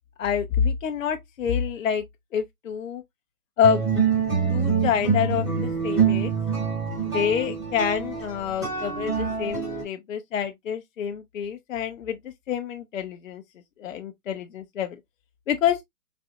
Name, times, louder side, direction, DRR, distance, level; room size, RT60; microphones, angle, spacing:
voice 1, 0.2-2.0 2.3-3.0 3.6-3.8 4.5-6.3 7.0-13.4 13.8-15.0 15.5-15.8, left 8 dB, 60° left, 0.6 m, -27 dB
sound 1, 3.6-9.8, right 6 dB, 5° right, 1.1 m, -25 dB
4.1 x 2.2 x 2.6 m
hypercardioid pair, 150°, 46 cm